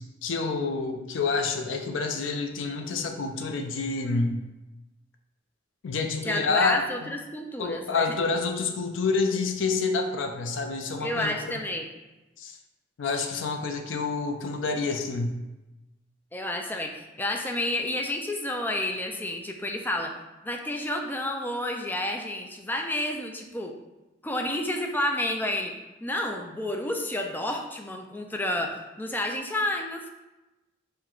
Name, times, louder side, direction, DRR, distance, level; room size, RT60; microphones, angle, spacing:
voice 1, 0.0-4.4 5.8-7.1 7.6-11.6 12.4-12.6 13.0-15.4, left 4 dB, 75° left, 5 dB, 0.5 m, -28 dB
voice 2, 6.2-8.1 11.0-11.9 16.3-20.1 20.4-23.7 24.2-25.7 26.0-30.1, left 1 dB, 10° left, 3 dB, 0.3 m, -30 dB
4.5 x 2.1 x 3.7 m, 1.0 s
head